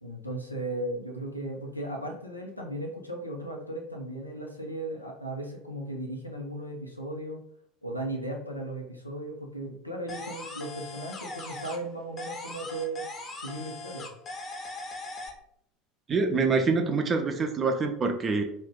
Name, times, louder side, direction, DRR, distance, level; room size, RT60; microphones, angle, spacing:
voice 1, 0.0-7.4 7.8-13.0 13.4-14.1, right 1 dB, 90° left, 0 dB, 0.5 m, -36 dB
sound 1, 10.1-11.9 12.2-15.3, left 3 dB, 30° left, 0.6 m, -40 dB
voice 2, 16.1-18.4, right 4 dB, 30° right, 5 dB, 0.5 m, -25 dB
2.5 x 2.4 x 3.5 m, 0.72 s
figure-of-eight pair, 70°, 0 cm